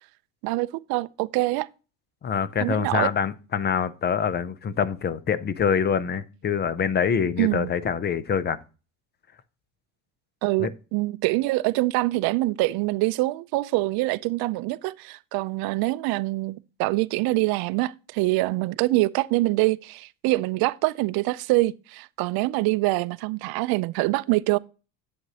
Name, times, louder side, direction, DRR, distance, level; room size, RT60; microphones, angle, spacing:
voice 1, 0.4-1.7 2.6-3.1 7.4-7.7 10.4-24.6, right 20 dB, 55° right, 0.5 m, -25 dB
voice 2, 2.2-8.6 10.6-10.7, left 7 dB, 25° left, 0.5 m, -25 dB
8.1 x 7.9 x 2.8 m
supercardioid pair, 125°, 45 cm